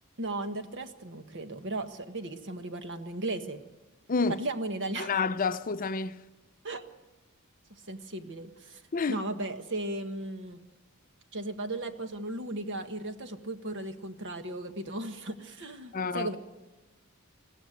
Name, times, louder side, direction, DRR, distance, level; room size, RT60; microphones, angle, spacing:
voice 1, 0.2-3.6 4.3-5.2 6.6-6.8 7.7-8.8 9.1-10.6 11.3-16.4, right 2 dB, 55° right, 1.5 m, -36 dB
voice 2, 4.1-4.4 5.0-6.2 8.9-9.2 15.9-16.4, left 4 dB, 40° left, 0.6 m, -29 dB
21.0 x 16.0 x 8.0 m
head